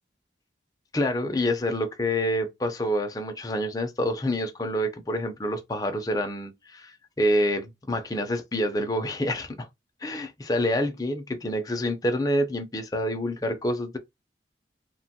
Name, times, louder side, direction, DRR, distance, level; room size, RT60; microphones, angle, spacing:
voice 1, 0.9-9.7 10.0-14.0, equal, 20° left, 0.4 m, -27 dB
3.0 x 2.2 x 2.7 m
head